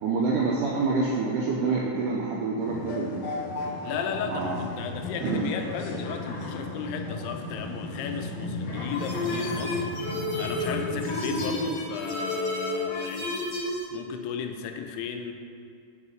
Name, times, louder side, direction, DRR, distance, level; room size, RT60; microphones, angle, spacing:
voice 1, 0.0-3.2 4.2-4.6 5.2-5.5, right 4 dB, 90° right, -4 dB, 1.8 m, -27 dB
sound 1, 2.6-11.6, left 2 dB, 70° left, 2.1 m, -35 dB
voice 2, 3.8-9.9 10.4-13.4 13.9-15.3, left 7 dB, 85° left, 5 dB, 2.6 m, -35 dB
sound 2, 8.9-13.8, left 1 dB, 55° left, 2.2 m, -31 dB
7.1 x 5.5 x 4.9 m, 2.4 s
omnidirectional pair, 4.5 m